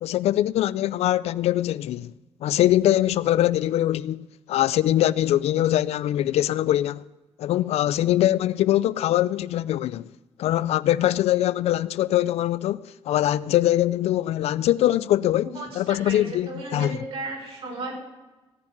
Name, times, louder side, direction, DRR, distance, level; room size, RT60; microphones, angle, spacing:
voice 1, 0.0-2.1 2.4-7.0 7.4-10.1 10.4-15.5 15.8-16.9, left 13 dB, 80° left, 0.4 m, -22 dB
voice 2, 15.4-18.0, right 2 dB, 60° right, 5.5 m, -35 dB
16.5 x 7.3 x 9.4 m
cardioid pair, 145°, 11 cm